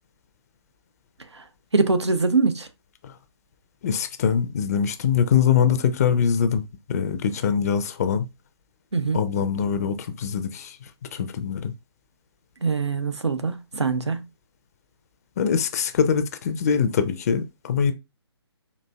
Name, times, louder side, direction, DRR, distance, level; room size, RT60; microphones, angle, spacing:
voice 1, 1.7-2.7 8.9-9.2 12.6-14.3, right 4 dB, 90° right, 0.6 m, -23 dB
voice 2, 3.8-6.6 6.9-8.3 9.1-10.8 11.1-11.7 15.4-17.9, left 7 dB, 35° left, 0.4 m, -23 dB
4.0 x 2.6 x 2.2 m
figure-of-eight pair, 135°, 14 cm